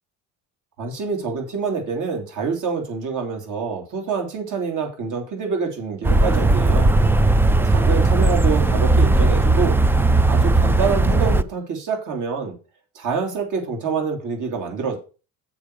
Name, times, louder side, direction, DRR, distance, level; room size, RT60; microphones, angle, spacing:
voice 1, 0.8-7.0 7.6-9.8 10.2-12.6 12.9-15.0, right 5 dB, 60° right, 3 dB, 3.1 m, -26 dB
sound 1, 6.0-11.4, right 2 dB, 5° right, 0.3 m, -17 dB
7.1 x 4.9 x 6.5 m, 0.34 s
cardioid pair, 95°, 34 cm